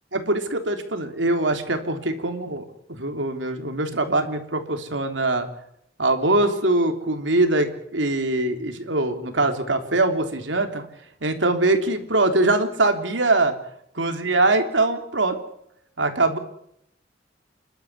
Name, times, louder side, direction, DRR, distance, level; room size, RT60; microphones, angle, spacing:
voice 1, 0.1-5.5 6.0-10.9 11.2-13.5 13.9-15.4 16.0-16.4, right 2 dB, 85° right, 6 dB, 3.3 m, -22 dB
29.0 x 12.5 x 9.7 m, 0.77 s
head